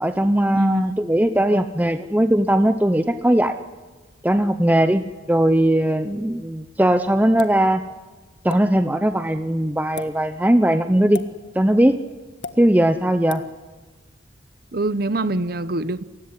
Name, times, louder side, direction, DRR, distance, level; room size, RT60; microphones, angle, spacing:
voice 1, 0.0-3.6 4.2-5.0 5.3-7.8 8.4-11.2 11.5-12.0 12.6-13.4, right 1 dB, 10° right, 9 dB, 0.7 m, -19 dB
voice 2, 0.5-1.0 1.5-1.6 14.7-16.0, right 2 dB, 55° right, 15 dB, 0.9 m, -25 dB
sound 1, 7.4-7.6 8.5-8.6 9.8-10.1 11.1-11.3 12.4-12.6 13.3-13.5, left 4 dB, 65° left, 1.6 m, -33 dB
29.5 x 16.5 x 9.9 m, 1.3 s
head